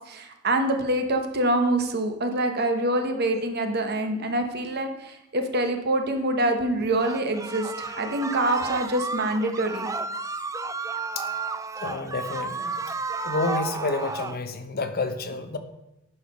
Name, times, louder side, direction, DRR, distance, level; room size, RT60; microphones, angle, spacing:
voice 1, 0.1-9.9, right 1 dB, 55° right, 6 dB, 1.1 m, -25 dB
sound 1, 7.0-14.4, right 4 dB, 15° right, 0.3 m, -32 dB
voice 2, 11.8-12.8 13.2-15.6, left 3 dB, 50° left, 8 dB, 0.8 m, -29 dB
11.0 x 4.9 x 5.3 m, 0.91 s
head